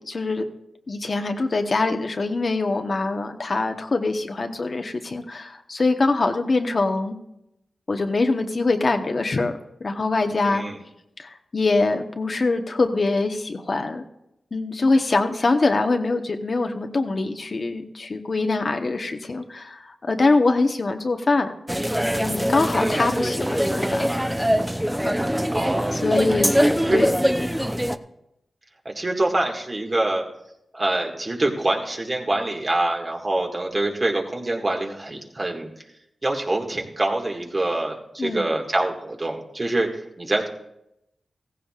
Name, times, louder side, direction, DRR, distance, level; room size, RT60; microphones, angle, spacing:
voice 1, 0.1-0.5 0.9-7.1 7.9-9.5 9.8-10.6 11.2-14.0 14.5-21.5 22.2-24.1 26.0-26.5 26.9-27.5 38.2-38.5, left 3 dB, 55° left, 5 dB, 1.1 m, -23 dB
voice 2, 10.4-10.8 22.8-23.1 25.5-26.1 26.8-27.0 28.9-30.2 30.7-35.7 36.2-39.9 40.2-40.5, right 2 dB, 40° right, 1 dB, 1.9 m, -25 dB
sound 1, 21.7-28.0, equal, 5° right, 0.6 m, -23 dB
15.5 x 15.0 x 2.5 m, 0.83 s
cardioid pair, 45°, 0 cm